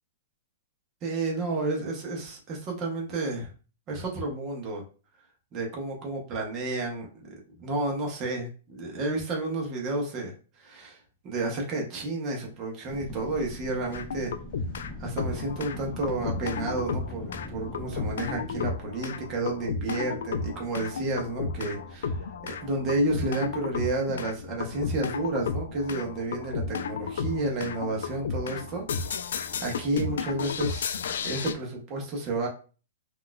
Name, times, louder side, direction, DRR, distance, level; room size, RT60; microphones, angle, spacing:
voice 1, 1.0-3.5 3.9-4.8 5.5-7.1 7.6-11.0 11.2-14.3 15.0-22.2 22.6-29.2 29.6-32.5, right 2 dB, 20° right, 0 dB, 0.7 m, -31 dB
sound 1, 12.9-18.8, left 1 dB, 15° left, 0.7 m, -41 dB
sound 2, 13.9-14.9 15.2-31.5, left 5 dB, 70° left, 0.3 m, -33 dB
4.0 x 2.3 x 2.2 m, 0.36 s
hypercardioid pair, 170°, 0 cm